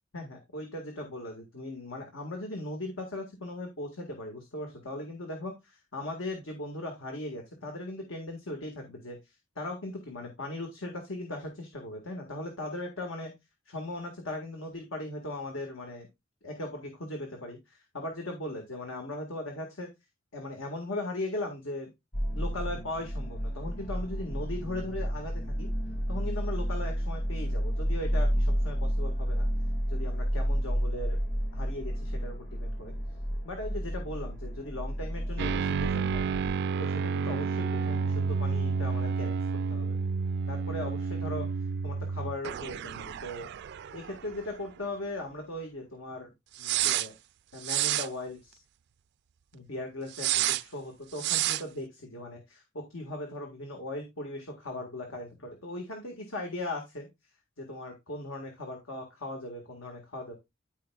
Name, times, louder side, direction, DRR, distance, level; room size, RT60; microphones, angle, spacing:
voice 1, 0.1-13.3 13.7-16.1 16.4-19.9 20.3-21.9 22.3-25.7 26.1-29.5 29.9-31.2 31.5-33.0 33.4-36.3 36.8-39.4 39.7-40.0 40.5-41.5 41.8-43.5 43.9-46.3 46.6-47.1 47.5-48.6 49.5-57.1 57.6-60.3, left 1 dB, 85° left, 2 dB, 1.8 m, -38 dB
sound 1, 22.1-36.5, equal, 50° left, 2.1 m, -31 dB
sound 2, 35.4-44.5 44.8-44.9 46.6-47.1 47.6-48.1 50.1-50.6 51.2-51.6, right 7 dB, 55° right, 0.3 m, -30 dB
13.5 x 4.8 x 2.3 m, 0.21 s
head